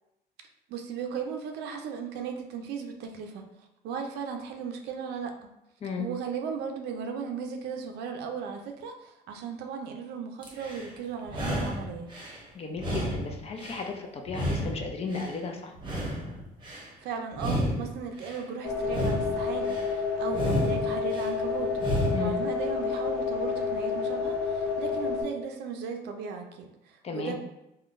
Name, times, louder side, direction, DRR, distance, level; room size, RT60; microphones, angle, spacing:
voice 1, 0.7-3.5 3.8-5.5 6.0-12.1 17.0-27.3, right 6 dB, 80° right, 5 dB, 0.5 m, -36 dB
sound 1, 10.4-10.9 11.3-12.4 12.8-13.9 14.3-15.4 15.8-16.9 17.3-18.4 18.8-19.9 20.3-21.3 21.7-22.4, equal, 30° right, 0.8 m, -31 dB
voice 2, 12.5-15.7 22.1-22.4 27.0-27.3, left 4 dB, 35° left, 3 dB, 0.5 m, -34 dB
sound 2, 18.6-25.2, left 5 dB, 65° left, 0.9 m, -29 dB
3.6 x 2.2 x 2.5 m, 0.89 s
cardioid pair, 110°, 17 cm